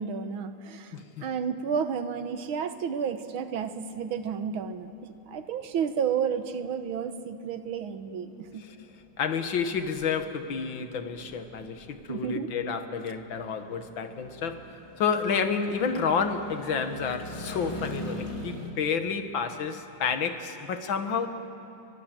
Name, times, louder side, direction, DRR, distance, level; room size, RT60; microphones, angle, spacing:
voice 1, 0.0-0.9 1.2-4.9 5.3-8.6 12.1-12.5, right 7 dB, 90° right, 2.0 m, -31 dB
voice 2, 0.9-1.3 9.2-21.3, left 6 dB, 70° left, 2.1 m, -30 dB
sound 1, 2.6-18.7, equal, 15° left, 2.7 m, -44 dB
29.0 x 23.5 x 7.7 m
omnidirectional pair, 2.2 m